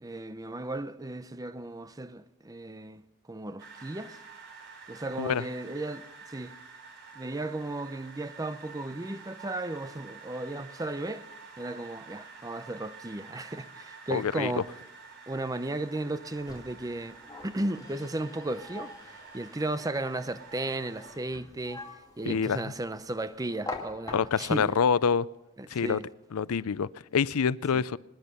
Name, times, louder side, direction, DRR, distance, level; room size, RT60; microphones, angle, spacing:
voice 1, 0.0-3.0 3.3-4.2 4.9-6.5 7.2-11.2 11.6-14.7 15.3-17.2 17.4-24.7 25.6-26.1 27.7-27.8, right 2 dB, 15° right, 0.6 m, -35 dB
sound 1, 3.6-21.2, right 5 dB, 55° right, 3.3 m, -49 dB
voice 2, 14.1-14.6 22.3-22.6 24.1-25.3 25.7-26.0 26.3-28.0, left 6 dB, 90° left, 0.5 m, -26 dB
sound 2, 16.1-24.6, left 2 dB, 15° left, 2.4 m, -45 dB
25.5 x 10.5 x 5.5 m
head